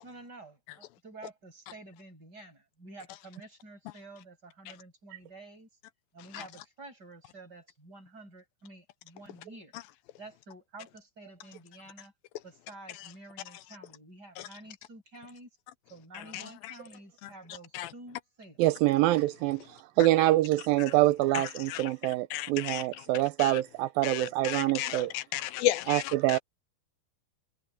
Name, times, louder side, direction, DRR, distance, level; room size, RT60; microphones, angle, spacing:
voice 1, 0.0-5.7 6.1-9.8 10.2-12.1 12.4-15.5 15.9-18.6, right 2 dB, 25° right, 8.1 m, -50 dB
voice 2, 18.6-25.1 25.9-26.4, right 16 dB, 85° right, 2.3 m, -26 dB
voice 3, 21.3-21.9 22.3-23.0 23.4-23.6 24.0-26.4, left 14 dB, 80° left, 2.4 m, -33 dB
omnidirectional pair, 4.2 m